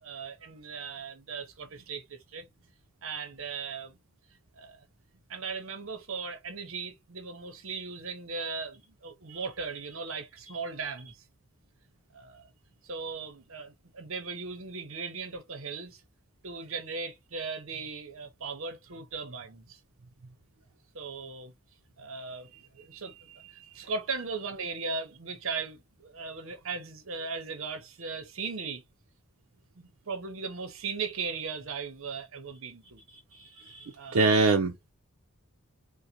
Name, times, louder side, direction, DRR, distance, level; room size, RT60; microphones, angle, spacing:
voice 1, 0.0-2.5 3.0-4.0 4.6-4.8 5.3-11.2 12.1-12.5 12.8-16.0 16.4-19.8 20.9-21.5 22.0-22.5 22.8-23.1 23.7-28.8 29.8-33.0 34.0-34.4, right 4 dB, 65° right, 0.9 m, -38 dB
voice 2, 33.3-34.9, right 3 dB, 80° right, 0.6 m, -26 dB
3.9 x 2.2 x 2.9 m
head